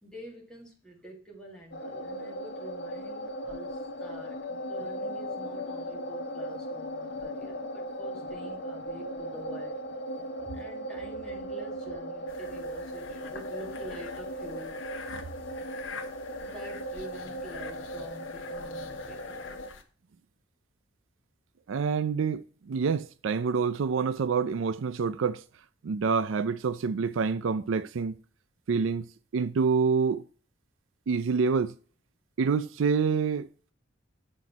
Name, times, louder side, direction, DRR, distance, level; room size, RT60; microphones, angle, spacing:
voice 1, 0.0-4.4 4.7-9.8 10.4-14.8 15.2-15.3 16.4-19.6, right 2 dB, 5° left, 2.0 m, -47 dB
sound 1, 1.7-19.7, equal, 55° left, 0.7 m, -37 dB
sound 2, 12.3-19.8, left 5 dB, 75° left, 1.0 m, -46 dB
voice 2, 21.7-25.4 25.8-28.2 28.7-29.1 29.3-30.2 31.1-31.7 32.4-33.5, right 5 dB, 75° right, 0.4 m, -27 dB
7.7 x 4.0 x 6.0 m
head